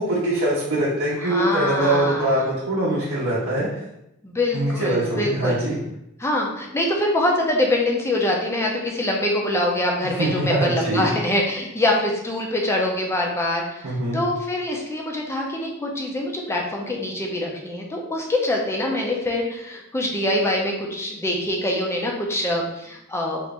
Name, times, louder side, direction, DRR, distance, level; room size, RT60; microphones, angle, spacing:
voice 1, 0.0-3.7 4.5-5.8 10.0-11.1 13.8-14.2, right 1 dB, 60° right, -8 dB, 0.7 m, -23 dB
voice 2, 1.2-2.4 4.2-5.6 6.2-23.4, left 1 dB, 10° left, 0 dB, 0.5 m, -24 dB
2.9 x 2.5 x 3.3 m, 0.83 s
head